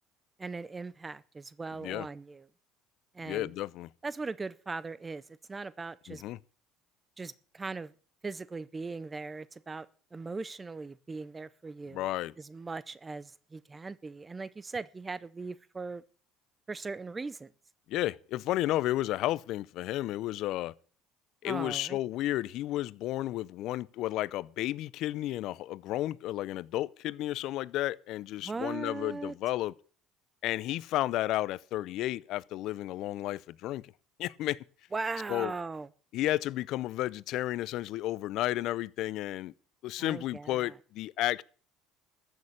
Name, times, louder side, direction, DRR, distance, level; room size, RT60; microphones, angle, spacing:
voice 1, 0.4-2.5 3.1-3.5 4.0-5.2 5.5-6.2 7.2-7.9 8.2-12.1 12.4-16.0 16.7-17.5 21.4-22.0 28.4-29.3 34.9-35.9 40.0-40.7, right 3 dB, 20° right, 0.6 m, -39 dB
voice 2, 3.2-3.9 6.1-6.4 11.9-12.3 17.9-20.7 21.4-29.7 30.4-33.9 34.2-34.6 35.3-35.5 36.1-39.5 39.8-41.4, left 15 dB, 65° left, 0.5 m, -32 dB
14.5 x 6.7 x 8.6 m
supercardioid pair, 110°, 0 cm